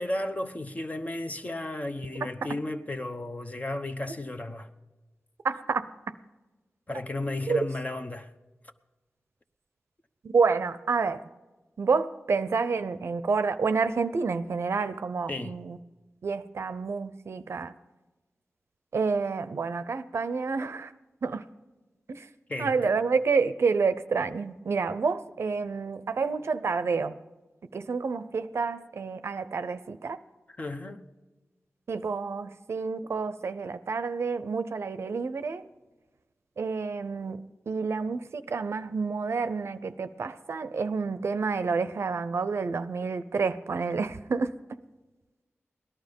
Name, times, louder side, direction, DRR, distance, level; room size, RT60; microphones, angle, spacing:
voice 1, 0.0-4.7 6.9-8.3 15.3-15.5 22.5-22.9 30.6-31.0, left 1 dB, 35° left, 1.0 m, -34 dB
voice 2, 5.4-5.8 7.5-7.6 10.2-11.2 11.8-15.8 16.2-17.7 18.9-20.9 21.2-21.4 22.1-22.3 22.6-27.1 27.7-30.2 31.9-35.7 36.6-44.5, right 4 dB, 75° right, 0.6 m, -29 dB
18.0 x 11.5 x 5.3 m
wide cardioid pair, 60°, 4 cm